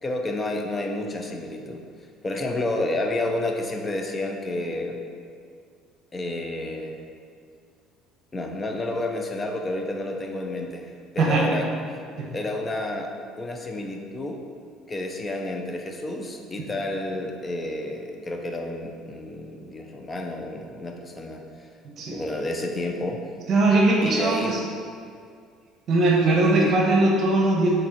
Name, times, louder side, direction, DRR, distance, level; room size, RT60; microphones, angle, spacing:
voice 1, 0.0-1.8 2.2-5.0 6.1-7.0 8.3-11.7 12.3-14.4 14.9-21.4 22.1-23.2 24.0-24.6 26.6-26.8, left 2 dB, 20° left, 3 dB, 0.6 m, -30 dB
voice 2, 23.5-24.6 25.9-27.7, right 2 dB, 50° right, -2 dB, 1.0 m, -20 dB
6.1 x 3.9 x 4.3 m, 2.2 s
cardioid pair, 120°, 0 cm